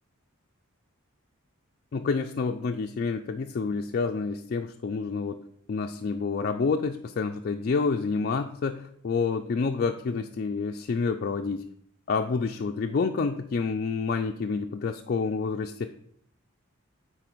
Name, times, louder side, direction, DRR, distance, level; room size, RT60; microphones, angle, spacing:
voice 1, 1.9-5.4 5.7-11.6 12.1-15.9, left 4 dB, 45° left, 4 dB, 0.3 m, -28 dB
9.1 x 4.1 x 4.5 m, 0.67 s
head